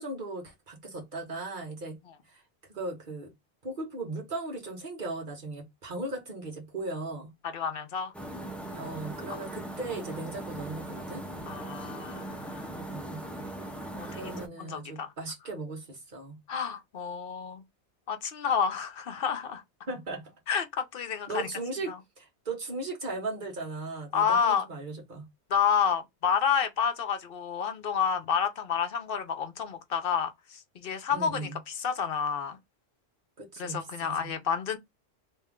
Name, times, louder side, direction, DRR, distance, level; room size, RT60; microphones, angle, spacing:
voice 1, 0.0-2.0 2.3-2.4 2.7-3.3 3.6-7.3 8.7-11.2 12.7-13.2 14.1-16.4 19.9-20.3 21.3-25.3 31.1-31.6 33.4-34.4, right 2 dB, 45° right, 1.4 m, -37 dB
voice 2, 7.4-8.1 11.5-12.7 13.9-14.3 14.6-15.1 16.5-17.6 18.1-19.6 20.5-21.5 21.9-22.0 24.1-24.7 25.5-32.6 33.6-34.8, left 7 dB, 60° left, 0.8 m, -29 dB
sound 1, 8.1-14.5, right 1 dB, ahead, 0.5 m, -39 dB
3.3 x 3.0 x 3.6 m
omnidirectional pair, 1.2 m